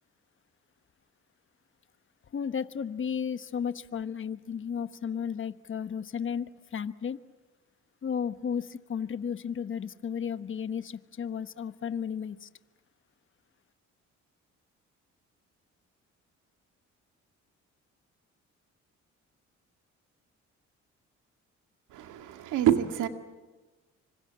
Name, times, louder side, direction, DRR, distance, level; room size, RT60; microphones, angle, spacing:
voice 1, 2.3-7.2 8.0-12.5, left 7 dB, 40° left, 1.1 m, -34 dB
voice 2, 21.9-23.1, right 11 dB, 90° right, 2.1 m, -26 dB
25.5 x 25.5 x 8.7 m
cardioid pair, 90°, 30 cm